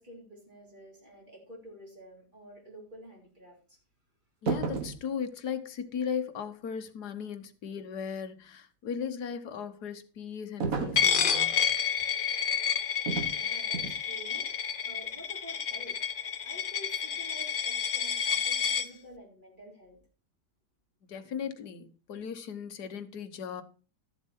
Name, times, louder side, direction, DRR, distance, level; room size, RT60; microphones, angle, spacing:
voice 1, 0.0-3.8 13.1-16.0 16.4-20.0, equal, 25° right, 4.4 m, -50 dB
voice 2, 4.4-11.6 21.1-23.6, left 7 dB, 70° left, 1.7 m, -37 dB
sound 1, 4.5-5.0 10.6-11.1 13.1-13.4 13.7-14.0, right 5 dB, 55° right, 1.7 m, -32 dB
Coin (dropping), 11.0-18.9, left 7 dB, 55° left, 0.6 m, -29 dB
13.0 x 7.4 x 4.4 m
omnidirectional pair, 1.8 m